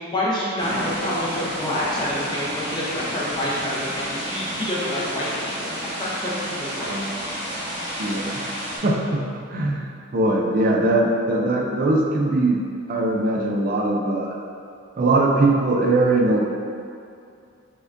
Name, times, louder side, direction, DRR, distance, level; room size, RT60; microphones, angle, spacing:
voice 1, 0.0-7.0, left 1 dB, 20° left, -7 dB, 0.5 m, -27 dB
sound 1, 0.6-8.8, equal, 20° right, 1.0 m, -31 dB
voice 2, 8.0-8.5 8.8-9.2 9.5-9.8 10.1-12.6 12.9-14.4 15.0-16.4, right 2 dB, 40° right, 0 dB, 0.3 m, -21 dB
4.9 x 2.2 x 2.5 m, 2.4 s
head